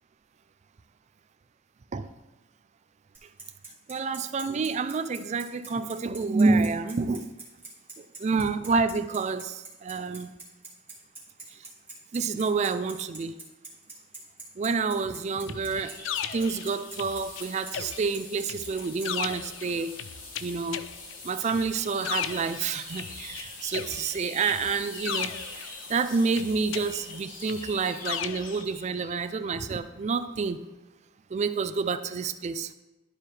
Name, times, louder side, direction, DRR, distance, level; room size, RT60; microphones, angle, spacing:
Bicycle, 3.1-19.1, right 3 dB, 10° right, 2.0 m, -43 dB
voice 1, 3.9-7.3 8.0-10.3 12.1-13.4 14.6-16.0 16.3-20.0 20.4-20.9 21.2-25.3 25.9-30.6 31.3-32.7, right 4 dB, 35° right, 12 dB, 0.3 m, -28 dB
sound 1, 15.4-29.2, left 2 dB, 45° left, 1.3 m, -44 dB
sound 2, 15.5-17.4 17.7-23.4 23.7-26.0 26.4-28.6, left 9 dB, 75° left, 0.4 m, -37 dB
11.5 x 4.6 x 3.2 m, 1.1 s
head